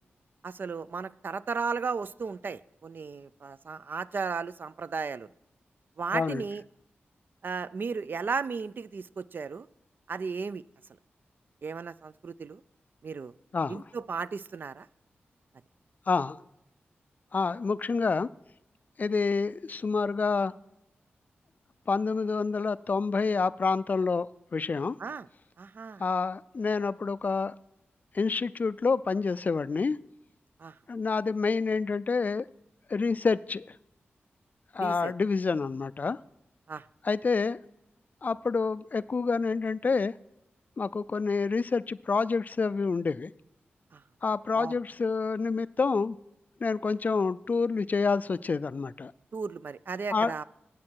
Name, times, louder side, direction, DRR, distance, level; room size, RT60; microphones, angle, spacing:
voice 1, 0.4-5.3 6.0-6.6 7.4-9.7 10.1-10.6 11.6-12.6 13.0-13.3 13.7-14.9 25.0-25.3 25.6-26.0 30.6-30.8 34.8-35.1 36.7-36.9 43.9-44.0 44.6-44.8 49.3-50.4, right 5 dB, 55° right, 16 dB, 0.3 m, -35 dB
voice 2, 6.1-6.4 13.5-13.8 16.1-16.4 17.3-18.3 19.0-20.5 21.9-24.3 24.5-25.0 26.0-27.5 28.1-30.0 30.9-32.4 32.9-33.7 34.7-36.2 37.0-37.6 38.2-40.1 40.8-43.3 44.2-46.2 46.6-49.1 50.1-50.3, left 4 dB, 40° left, 17 dB, 0.3 m, -28 dB
13.5 x 8.6 x 4.6 m, 0.86 s
wide cardioid pair, 100°, 4 cm